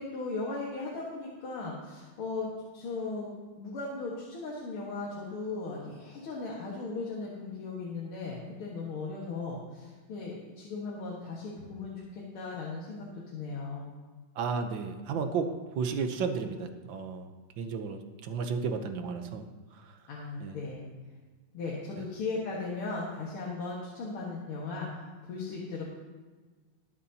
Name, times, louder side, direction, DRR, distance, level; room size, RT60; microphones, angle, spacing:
voice 1, 0.0-2.5 2.7-3.3 3.6-13.9 20.1-20.9 21.5-25.8, left 3 dB, 80° left, -4 dB, 2.5 m, -37 dB
voice 2, 14.3-19.4 19.7-20.0 20.4-20.6, right 5 dB, 65° right, 7 dB, 1.5 m, -33 dB
21.5 x 8.3 x 2.8 m, 1.4 s
omnidirectional pair, 2.4 m